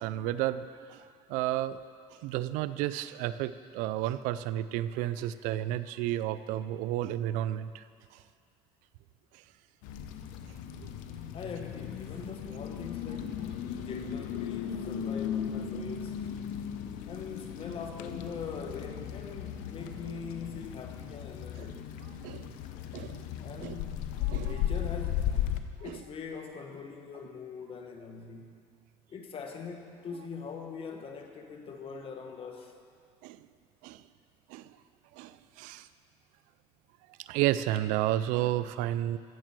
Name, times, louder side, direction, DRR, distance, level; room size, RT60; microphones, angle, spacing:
voice 1, 0.0-1.8 2.1-7.8 8.1-8.2 9.3-9.4 13.2-13.3 21.6-21.7 22.2-22.5 22.9-23.3 23.6-23.8 24.3-24.7 25.8-26.0 33.2-33.5 33.8-34.0 34.5-34.8 35.1-35.9 37.2-39.2, right 13 dB, 85° right, 14 dB, 0.4 m, -32 dB
sound 1, 9.8-25.6, left 9 dB, 85° left, 0.8 m, -36 dB
voice 2, 11.3-13.5 13.8-16.2 17.1-21.9 23.4-24.1 24.4-25.3 25.8-28.6 29.1-32.7, left 5 dB, 45° left, 3 dB, 1.7 m, -42 dB
15.5 x 7.4 x 6.1 m, 2.2 s
cardioid pair, 100°, 13 cm